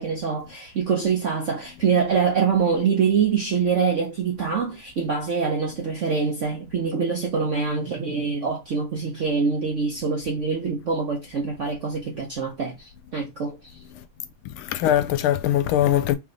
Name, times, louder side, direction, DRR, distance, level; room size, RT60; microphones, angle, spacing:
voice 1, 0.0-13.7, right 5 dB, 65° right, 0.7 m, -24 dB
voice 2, 14.4-16.2, left 11 dB, 80° left, 1.4 m, -22 dB
3.5 x 3.3 x 3.8 m
omnidirectional pair, 2.3 m